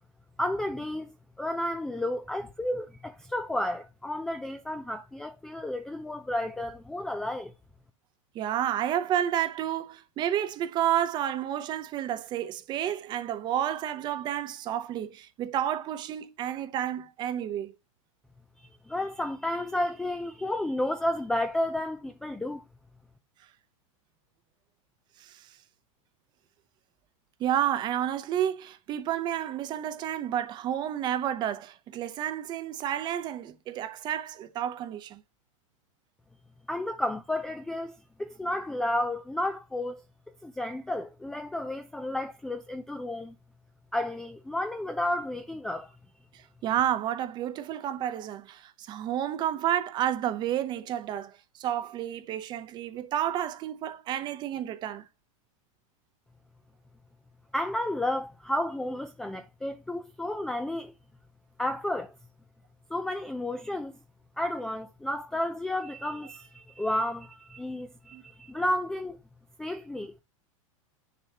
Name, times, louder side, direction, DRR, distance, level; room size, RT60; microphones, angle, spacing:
voice 1, 0.4-1.1 1.4-7.5 18.9-22.6 36.7-40.0 40.4-43.3 43.9-45.9 57.5-60.9 61.6-62.1 62.9-63.9 64.4-69.2 69.6-70.2, left 1 dB, 5° left, 0.3 m, -32 dB
voice 2, 8.3-17.7 25.2-25.5 27.4-35.2 46.3-55.1 68.1-68.2, right 11 dB, 25° right, 0.7 m, -30 dB
9.8 x 6.7 x 2.8 m
supercardioid pair, 155°, 18 cm